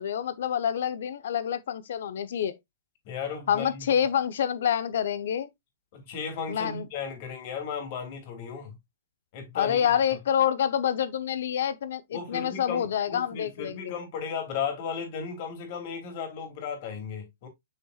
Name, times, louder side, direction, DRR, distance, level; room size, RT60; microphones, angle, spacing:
voice 1, 0.0-2.6 3.5-5.5 6.5-6.9 9.5-14.0, left 9 dB, 70° left, 0.9 m, -27 dB
voice 2, 3.0-3.8 5.9-8.8 9.3-9.9 12.1-17.5, left 6 dB, 45° left, 2.8 m, -35 dB
6.7 x 6.2 x 2.4 m
hypercardioid pair, 155°, 0 cm